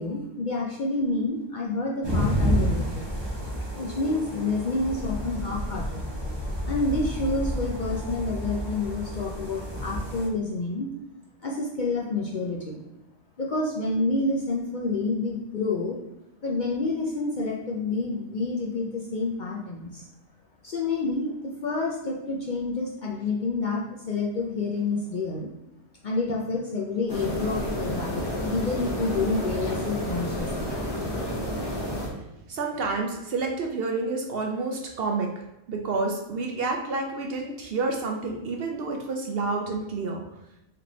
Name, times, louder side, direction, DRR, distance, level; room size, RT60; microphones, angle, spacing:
voice 1, 0.0-3.1 3.8-6.0 6.7-10.9 11.4-12.8 13.4-16.0 16.4-20.0 20.6-25.5 26.0-30.7, left 3 dB, 55° left, -2 dB, 0.6 m, -28 dB
sound 1, 2.0-10.3, equal, 20° right, 1.0 m, -30 dB
sound 2, 27.1-32.1, equal, 25° left, 0.8 m, -30 dB
voice 2, 32.5-35.3 35.7-40.2, right 3 dB, 60° right, 2 dB, 0.7 m, -29 dB
3.4 x 3.3 x 3.7 m, 0.89 s
omnidirectional pair, 1.2 m